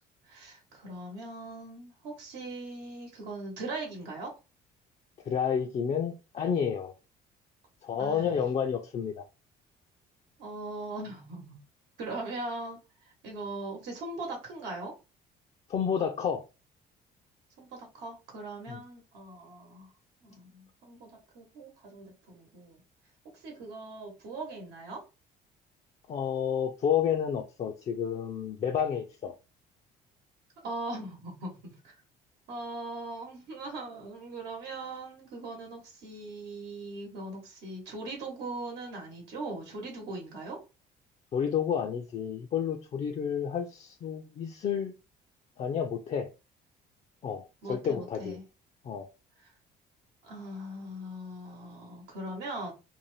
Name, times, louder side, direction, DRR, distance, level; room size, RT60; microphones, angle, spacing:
voice 1, 0.3-4.3 8.0-8.4 10.4-11.6 12.0-14.9 17.6-19.9 20.2-22.8 23.3-25.0 30.6-31.9 32.5-40.6 47.6-48.4 49.4-49.5 50.2-52.7, right 2 dB, 85° right, 1.0 m, -40 dB
voice 2, 5.3-6.9 7.8-9.2 15.7-16.4 18.7-18.8 26.1-29.3 41.3-44.9 45.6-46.3 47.2-48.4 48.8-49.1, left 7 dB, 40° left, 0.4 m, -30 dB
2.6 x 2.1 x 3.1 m
cardioid pair, 110°, 17 cm